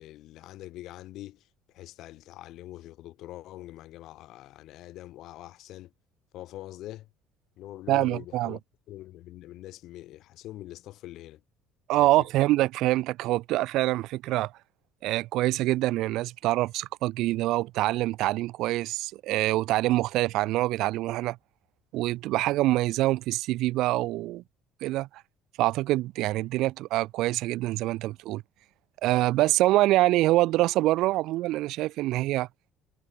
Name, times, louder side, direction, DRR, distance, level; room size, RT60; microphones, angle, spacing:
voice 1, 0.0-5.9 6.3-7.1 7.6-8.6 8.9-11.4 11.9-12.3, left 15 dB, 55° left, 7.8 m, -44 dB
voice 2, 7.9-8.6 11.9-14.5 15.0-21.4 21.9-24.4 24.8-25.1 25.6-28.4 29.0-32.5, right 17 dB, 60° right, 2.3 m, -25 dB
cardioid pair, 165°, 0 cm